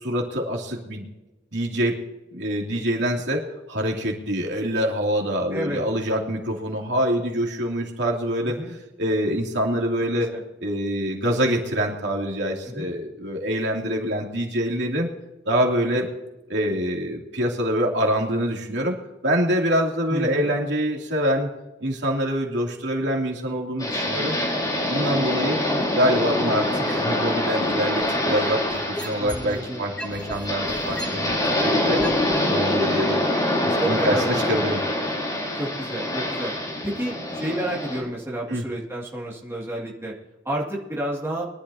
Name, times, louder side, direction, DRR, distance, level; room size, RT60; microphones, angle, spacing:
voice 1, 0.0-1.1 1.5-2.0 2.3-10.3 10.6-15.1 15.4-16.1 16.5-19.0 19.2-21.5 21.8-24.4 24.9-25.6 25.9-32.0 32.5-33.2 33.6-34.8 38.5-38.6, equal, 65° right, 0 dB, 2.9 m, -25 dB
voice 2, 5.5-5.8 8.6-8.7 10.3-10.4 12.6-12.9 20.1-20.5 29.2-29.8 33.8-34.5 35.6-36.5 36.8-40.1 40.4-41.4, right 1 dB, 15° right, -4 dB, 2.3 m, -30 dB
sound 1, 23.8-38.0, left 1 dB, 20° left, 4.5 m, -25 dB
sound 2, 28.0-29.6 30.0-32.4 33.0-33.1, equal, 5° left, 1.1 m, -35 dB
23.0 x 12.0 x 2.8 m, 1.0 s
head